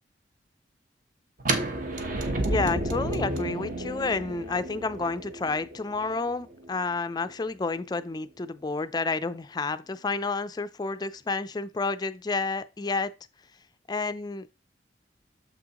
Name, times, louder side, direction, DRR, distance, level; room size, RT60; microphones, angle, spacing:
sound 1, 1.4-7.3, right 1 dB, 50° right, 1.0 m, -31 dB
voice 1, 2.4-13.1 13.9-14.5, left 3 dB, 25° left, 0.4 m, -30 dB
6.8 x 6.1 x 2.9 m
head